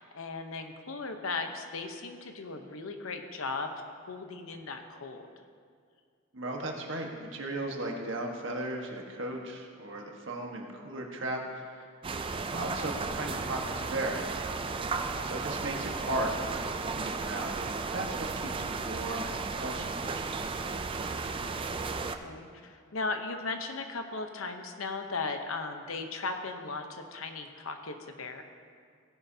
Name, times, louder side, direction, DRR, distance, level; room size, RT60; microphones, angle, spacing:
voice 1, 0.0-5.3 15.1-15.4 22.0-28.4, left 3 dB, 80° left, 6 dB, 0.9 m, -37 dB
voice 2, 6.3-11.8 12.5-14.2 15.2-21.1, right 1 dB, 60° right, 1 dB, 1.5 m, -36 dB
sound 1, 12.0-22.2, right 4 dB, 25° right, 0.4 m, -34 dB
16.5 x 10.0 x 2.8 m, 2.1 s
head